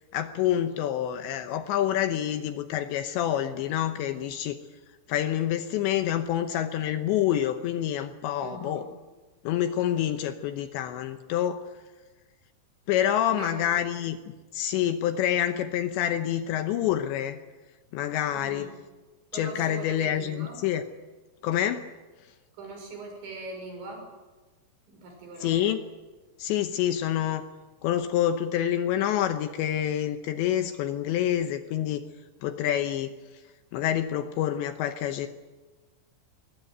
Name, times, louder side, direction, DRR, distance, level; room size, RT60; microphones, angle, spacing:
voice 1, 0.1-4.6 5.1-8.9 9.4-11.6 12.9-14.2 14.5-17.4 17.9-18.7 19.3-20.8 21.4-21.9 25.4-25.8 26.4-27.4 27.8-32.1 32.4-33.2 33.7-35.3, left 11 dB, 75° left, 8 dB, 2.8 m, -27 dB
voice 2, 8.4-8.9 13.3-13.6 18.3-18.7 19.3-20.6 22.6-24.1 24.9-25.7, right 3 dB, 65° right, 2 dB, 8.4 m, -41 dB
21.5 x 20.0 x 9.3 m, 1.2 s
omnidirectional pair, 5.8 m